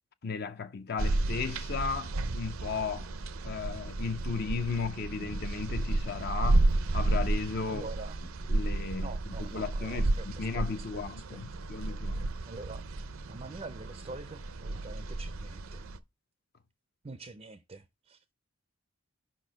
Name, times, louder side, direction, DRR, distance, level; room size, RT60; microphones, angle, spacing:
voice 1, 0.2-3.1 3.4-6.7 6.9-7.9 8.5-9.1 9.4-12.3, left 5 dB, 45° left, 0.5 m, -35 dB
sound 1, 1.0-16.0, right 2 dB, 75° right, 0.6 m, -32 dB
voice 2, 7.7-8.2 9.0-10.8 11.3-11.4 12.4-12.9 13.2-15.9 17.0-18.2, right 3 dB, 30° right, 0.4 m, -45 dB
5.6 x 4.3 x 6.1 m
head